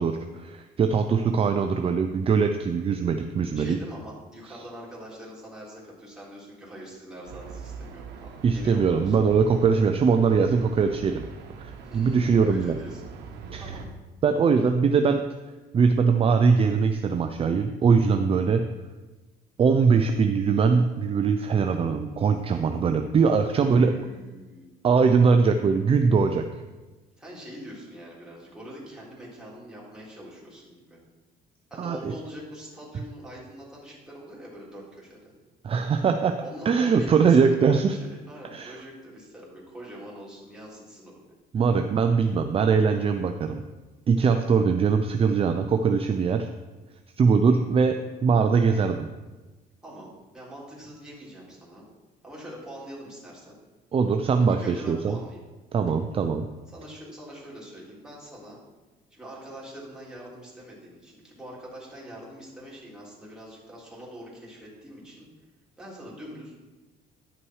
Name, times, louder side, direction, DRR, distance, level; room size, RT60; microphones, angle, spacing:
voice 1, 0.0-3.8 8.4-11.3 11.6-12.8 13.5-13.6 14.2-15.2 15.7-18.6 19.6-23.9 24.8-26.4 31.8-32.1 35.6-36.4 36.7-37.9 38.5-38.7 41.5-43.6 44.1-46.5 47.2-49.1 53.9-55.2 55.7-56.5, right 5 dB, 35° right, 6 dB, 0.5 m, -22 dB
voice 2, 3.6-9.2 11.8-13.0 13.6-13.9 23.5-24.7 27.2-31.0 31.7-35.3 36.4-41.2 49.8-51.8 52.2-53.6 54.5-55.4 56.7-58.6 59.1-65.3 65.8-66.6, equal, 5° right, -6 dB, 3.6 m, -43 dB
sound 1, 7.2-13.9, right 5 dB, 85° right, 1.1 m, -42 dB
11.0 x 5.9 x 4.8 m, 1.2 s
cardioid pair, 110°, 17 cm